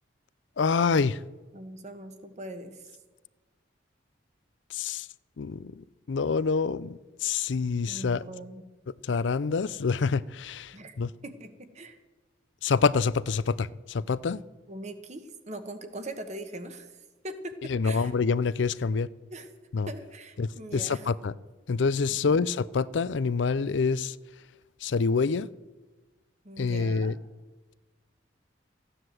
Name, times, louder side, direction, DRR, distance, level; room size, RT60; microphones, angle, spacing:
voice 1, 0.6-1.2 4.7-5.1 5.4-8.2 9.0-11.1 12.6-14.4 17.7-19.1 19.7-19.9 20.4-21.3 21.7-24.2 24.8-25.5 26.6-27.1, left 5 dB, 75° left, 0.5 m, -27 dB
voice 2, 1.5-2.9 7.9-8.6 10.7-10.9 11.2-12.0 14.7-18.1 19.3-19.5 19.9-21.1 22.1-22.4 26.4-27.2, right 1 dB, 35° right, 1.3 m, -41 dB
14.5 x 10.0 x 7.7 m
head